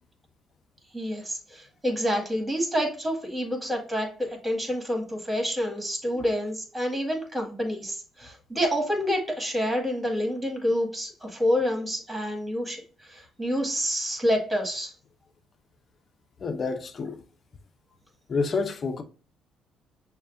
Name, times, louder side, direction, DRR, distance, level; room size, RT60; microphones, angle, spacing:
voice 1, 0.9-14.9, equal, 15° right, 1.9 m, -28 dB
voice 2, 16.4-17.2 18.3-19.0, left 4 dB, 45° left, 0.6 m, -28 dB
6.3 x 2.2 x 2.5 m
supercardioid pair, 65°, 0 cm